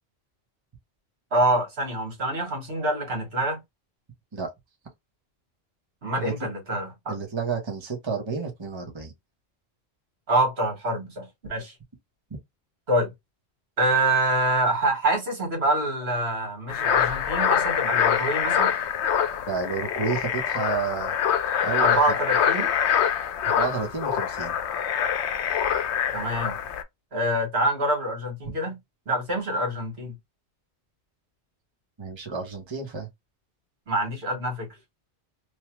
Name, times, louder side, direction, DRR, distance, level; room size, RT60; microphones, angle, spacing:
voice 1, 1.3-3.6 6.0-7.2 10.3-11.7 12.9-13.1 13.8-18.7 21.8-22.7 26.1-26.6 27.1-28.8 29.1-30.1 33.9-34.7, right 1 dB, 70° right, 1.7 m, -26 dB
voice 2, 7.1-9.1 19.5-21.1 21.6-21.9 23.4-24.5 28.4-28.6 32.0-33.1, right 5 dB, 25° right, 0.9 m, -30 dB
sound 1, 16.7-26.8, left 8 dB, 85° left, 0.9 m, -25 dB
3.2 x 2.3 x 3.0 m
omnidirectional pair, 1.1 m